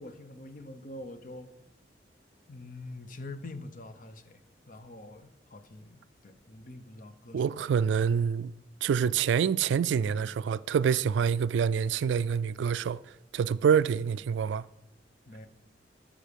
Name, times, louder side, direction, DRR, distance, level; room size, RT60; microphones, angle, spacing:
voice 1, 0.0-1.5 2.5-4.4 4.7-7.7 15.3-15.5, left 2 dB, 50° left, 0.8 m, -45 dB
voice 2, 7.3-8.5 8.8-13.0 13.3-14.6, right 7 dB, 75° right, 0.3 m, -26 dB
13.5 x 5.2 x 5.2 m
head